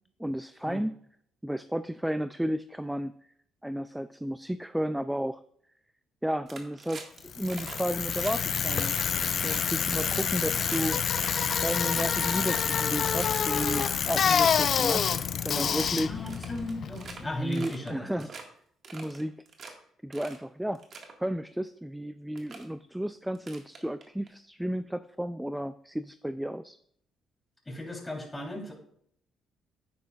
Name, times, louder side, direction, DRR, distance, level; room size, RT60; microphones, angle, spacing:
voice 1, 0.2-0.9 1.4-3.1 3.6-5.4 6.2-11.0 11.6-15.1 15.4-16.2 17.2-18.3 18.9-19.3 20.0-20.8 21.2-26.8, equal, 5° right, 12 dB, 0.3 m, -33 dB
sound 1, 6.5-7.2 7.5-7.8 8.1-8.3 8.7-10.8 11.1-12.7 13.1-14.0 14.3-14.5 14.8-15.2 15.5-15.9 16.3-17.2 17.5-17.9 18.2-18.4 18.8-19.7 20.1-20.4 20.7-21.1 21.9-22.0 22.4-22.6 23.3-24.3, right 4 dB, 55° right, 1.7 m, -44 dB
Bicycle, 7.3-17.3, left 7 dB, 55° left, 0.5 m, -27 dB
voice 2, 16.1-17.9 27.7-28.7, left 1 dB, 15° left, 1 dB, 3.3 m, -36 dB
9.5 x 9.2 x 2.4 m, 0.66 s
supercardioid pair, 65°, 0 cm